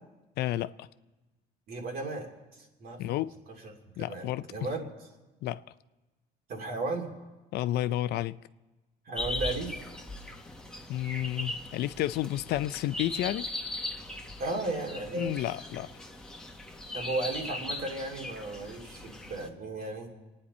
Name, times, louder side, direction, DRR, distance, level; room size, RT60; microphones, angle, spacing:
voice 1, 0.4-0.9 3.0-3.4 4.0-4.5 5.4-5.6 7.5-8.4 10.9-13.5 15.1-15.9, left 14 dB, 75° left, 0.5 m, -31 dB
voice 2, 1.7-2.3 2.6-3.0 3.6-3.7 4.0-4.8 6.5-7.1 9.1-9.9 14.4-15.3 16.9-20.1, right 2 dB, 60° right, 2.8 m, -35 dB
sound 1, 9.1-19.5, left 1 dB, 5° left, 1.3 m, -39 dB
29.5 x 9.8 x 4.2 m
cardioid pair, 110°, 17 cm